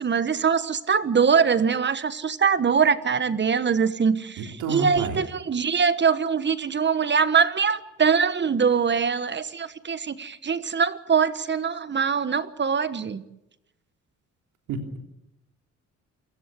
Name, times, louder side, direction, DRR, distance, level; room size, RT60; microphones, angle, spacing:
voice 1, 0.0-13.2, right 6 dB, 35° right, 14 dB, 1.3 m, -23 dB
voice 2, 4.4-5.2 14.7-15.0, right 4 dB, 90° right, 4 dB, 3.4 m, -30 dB
28.5 x 15.5 x 8.4 m, 0.85 s
cardioid pair, 90°, 30 cm